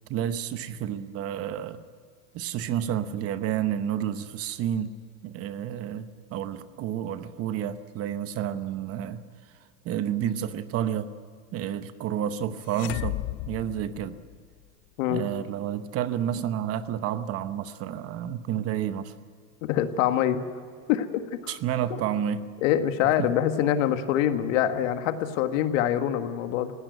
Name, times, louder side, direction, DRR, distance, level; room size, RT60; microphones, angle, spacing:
voice 1, 0.1-1.8 2.3-4.9 5.2-9.2 9.8-11.1 11.5-13.2 13.5-14.2 15.1-19.1 21.5-22.5 23.0-23.1, right 10 dB, 35° right, 12 dB, 0.9 m, -30 dB
sound 1, 12.7-14.7, left 18 dB, 50° left, 0.6 m, -34 dB
voice 2, 19.6-20.4 20.9-21.5 21.9-22.0 22.6-26.7, left 10 dB, 70° left, 8 dB, 1.8 m, -25 dB
20.0 x 16.5 x 9.1 m, 2.1 s
supercardioid pair, 155°, 40 cm